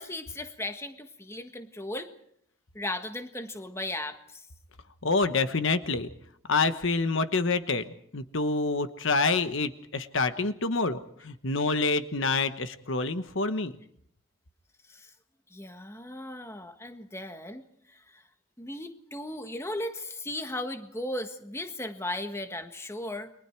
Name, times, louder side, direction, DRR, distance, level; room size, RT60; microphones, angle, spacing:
voice 1, 0.0-2.1 2.7-4.5 14.9-15.1 15.5-17.6 17.9-18.2 18.6-23.3, left 1 dB, 10° left, 7 dB, 1.5 m, -36 dB
voice 2, 5.0-6.1 6.5-13.7, left 3 dB, 60° left, 10 dB, 1.2 m, -27 dB
30.0 x 23.5 x 4.6 m, 0.68 s
head